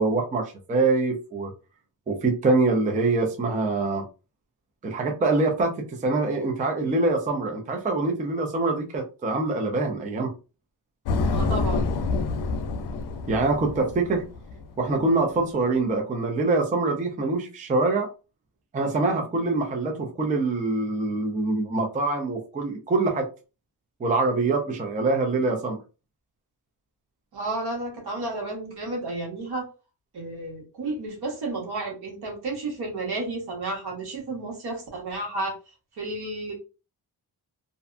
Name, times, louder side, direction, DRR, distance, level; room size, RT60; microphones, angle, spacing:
voice 1, 0.0-1.5 2.1-4.1 4.8-10.3 13.3-14.2 14.8-18.1 18.7-23.3 24.0-25.8, right 3 dB, 20° right, 0.4 m, -24 dB
sound 1, 11.1-14.8, left 3 dB, 80° left, 0.5 m, -27 dB
voice 2, 11.3-11.9 27.3-29.6 30.1-35.6 36.0-36.5, right 2 dB, 75° right, 1.2 m, -32 dB
2.6 x 2.2 x 2.4 m
wide cardioid pair, 150°, 39 cm